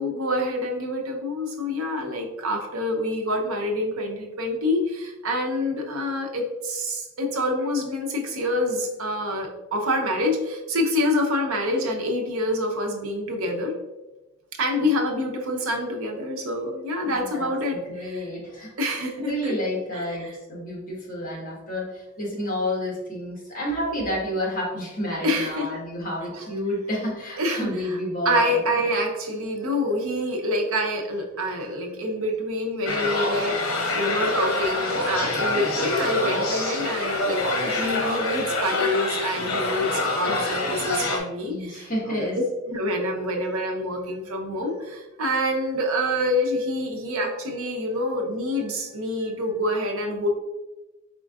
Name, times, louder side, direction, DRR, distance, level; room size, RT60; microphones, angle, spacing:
voice 1, 0.0-13.7 14.6-18.3 18.8-19.5 19.9-20.4 25.2-25.7 26.3-26.5 27.4-28.0 28.2-50.3, left 1 dB, 80° right, 2 dB, 0.7 m, -27 dB
voice 2, 17.0-18.7 19.2-21.9 22.2-28.6 41.4-42.4, left 1 dB, 40° left, -3 dB, 1.3 m, -30 dB
sound 1, 32.9-41.2, left 2 dB, 90° left, 0.8 m, -26 dB
4.4 x 3.7 x 2.3 m, 1.1 s
head